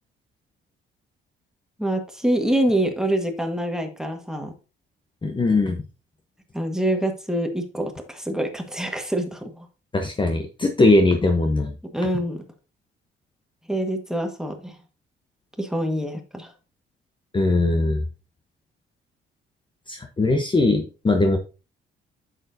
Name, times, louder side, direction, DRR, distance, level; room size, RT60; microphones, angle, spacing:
voice 1, 1.8-4.5 6.5-9.7 11.9-12.4 13.7-14.8 15.6-16.5, right 1 dB, 5° right, 4 dB, 1.6 m, -25 dB
voice 2, 5.2-5.8 9.9-11.7 17.3-18.0 19.9-21.4, left 2 dB, 25° left, 5 dB, 0.9 m, -20 dB
8.5 x 6.9 x 2.7 m, 0.32 s
cardioid pair, 90°, 20 cm